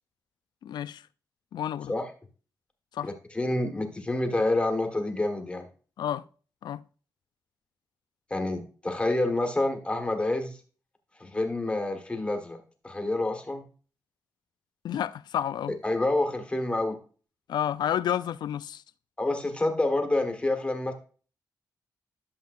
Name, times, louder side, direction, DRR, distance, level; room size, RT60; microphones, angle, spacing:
voice 1, 0.6-1.0 1.5-1.9 2.9-3.1 6.0-6.2 6.6-6.8 14.8-15.8 17.5-18.8, left 10 dB, 80° left, 0.4 m, -30 dB
voice 2, 3.0-5.7 8.3-10.6 11.2-12.6 12.8-13.6 15.8-17.0 19.2-20.9, left 2 dB, 15° left, 1.4 m, -28 dB
11.5 x 7.1 x 2.5 m
wide cardioid pair, 130°, 7 cm